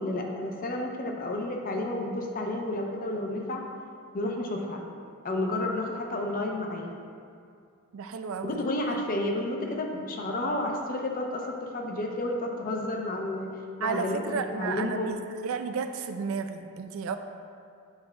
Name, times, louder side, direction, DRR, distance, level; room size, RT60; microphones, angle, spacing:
voice 1, 0.0-3.6 4.1-4.8 5.2-7.0 8.4-15.2, left 1 dB, 40° left, 1 dB, 0.6 m, -31 dB
voice 2, 7.9-8.6 13.8-15.2 15.4-17.2, right 5 dB, 70° right, 8 dB, 0.3 m, -32 dB
8.0 x 5.3 x 2.2 m, 2.4 s
head